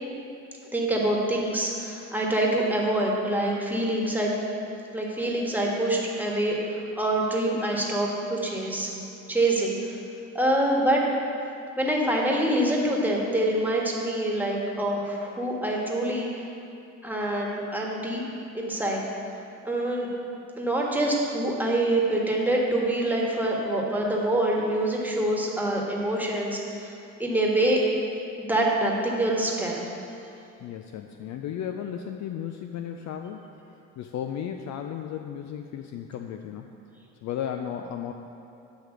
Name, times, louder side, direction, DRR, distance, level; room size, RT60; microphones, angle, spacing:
voice 1, 0.7-4.3 4.9-8.9 9.3-9.9 10.3-11.0 11.8-16.4 17.0-18.2 18.5-19.0 19.6-20.1 20.6-26.9 27.2-27.8 28.4-29.8, right 1 dB, 5° right, -2 dB, 1.4 m, -25 dB
voice 2, 30.6-33.5 34.0-36.7 37.2-38.1, left 9 dB, 50° left, 5 dB, 0.4 m, -34 dB
8.2 x 3.3 x 6.1 m, 2.7 s
hypercardioid pair, 60°, 37 cm